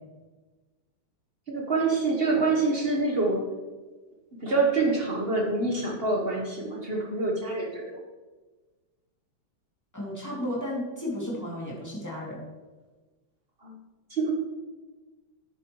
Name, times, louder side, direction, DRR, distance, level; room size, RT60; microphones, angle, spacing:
voice 1, 1.5-3.4 4.4-7.8 13.6-13.7 14.1-14.3, right 3 dB, 35° right, 0 dB, 1.1 m, -26 dB
voice 2, 9.9-12.4, left 1 dB, 10° left, -5 dB, 2.5 m, -33 dB
10.5 x 7.8 x 3.1 m, 1.3 s
omnidirectional pair, 2.2 m